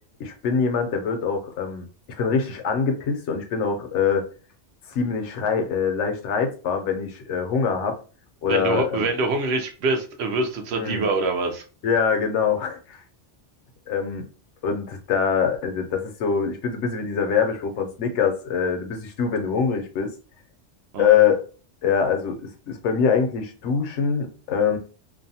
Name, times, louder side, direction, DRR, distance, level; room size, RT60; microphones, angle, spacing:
voice 1, 0.2-1.9 2.2-4.3 4.9-8.0 8.4-9.1 10.7-11.1 11.8-13.0 13.9-14.3 14.6-20.1 21.0-21.4 21.8-24.8, left 6 dB, 70° left, 5 dB, 0.9 m, -24 dB
voice 2, 8.5-11.6 20.9-21.2, right 3 dB, 65° right, 5 dB, 0.8 m, -25 dB
2.6 x 2.1 x 2.7 m, 0.36 s
omnidirectional pair, 1.3 m